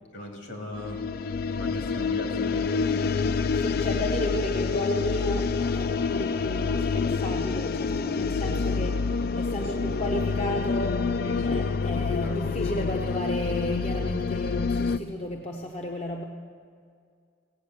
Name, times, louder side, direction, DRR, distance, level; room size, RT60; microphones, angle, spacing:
voice 1, 0.1-1.0 1.5-3.2 9.6-9.9 11.2-11.6 12.2-12.3, left 1 dB, 70° left, 1 dB, 2.7 m, -38 dB
sound 1, 0.7-15.0, left 5 dB, 50° left, 0.3 m, -27 dB
voice 2, 3.6-11.1 11.4-16.2, equal, 35° left, 1 dB, 0.7 m, -33 dB
17.0 x 8.2 x 6.4 m, 2.2 s
head